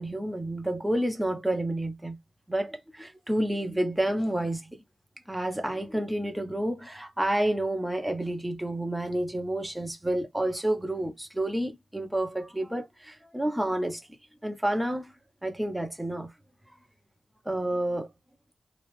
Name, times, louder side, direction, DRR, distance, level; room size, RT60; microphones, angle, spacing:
voice 1, 0.0-2.2 2.5-4.8 5.3-14.0 14.4-15.1 15.4-16.3 17.4-18.1, right 1 dB, 5° right, 1.0 m, -29 dB
3.2 x 2.3 x 3.2 m
cardioid pair, 60°, 0 cm